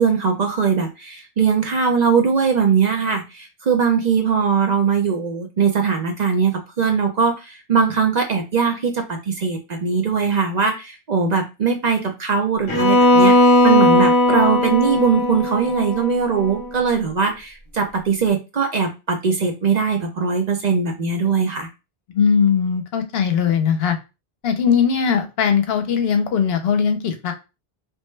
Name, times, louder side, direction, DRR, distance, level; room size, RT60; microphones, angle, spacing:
voice 1, 0.0-21.7, right 5 dB, 50° right, 3 dB, 0.6 m, -20 dB
Bowed string instrument, 12.7-16.7, left 1 dB, 35° left, 0.7 m, -17 dB
voice 2, 22.1-24.0 24.4-27.3, left 7 dB, 75° left, 7 dB, 0.8 m, -19 dB
3.2 x 2.2 x 3.1 m, 0.27 s
omnidirectional pair, 1.1 m